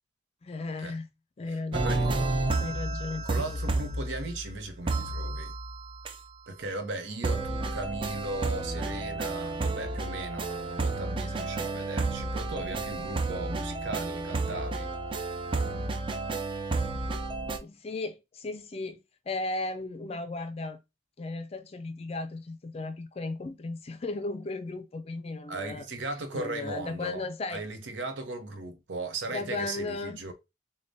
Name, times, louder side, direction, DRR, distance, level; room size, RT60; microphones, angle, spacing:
voice 1, 0.4-1.1 1.4-2.3 2.6-3.3 17.6-20.8 21.2-25.8 26.3-27.6 29.3-30.2, left 3 dB, 35° left, 0.4 m, -35 dB
voice 2, 1.5-2.2 3.2-5.5 6.5-14.9 25.5-30.3, right 2 dB, 85° right, 0.8 m, -37 dB
sound 1, 1.7-4.5 4.9-6.1 7.2-17.6, right 2 dB, 30° right, 0.4 m, -31 dB
6.6 x 2.2 x 2.6 m
head